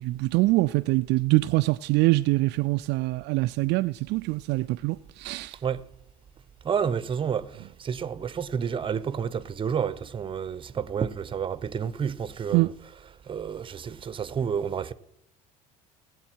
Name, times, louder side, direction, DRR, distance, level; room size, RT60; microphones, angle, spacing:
voice 1, 0.0-5.6 12.5-12.7, right 21 dB, 60° right, 0.4 m, -24 dB
voice 2, 6.6-12.7 13.2-14.9, right 7 dB, 25° right, 0.8 m, -30 dB
20.5 x 8.0 x 4.5 m
supercardioid pair, 100°, 20 cm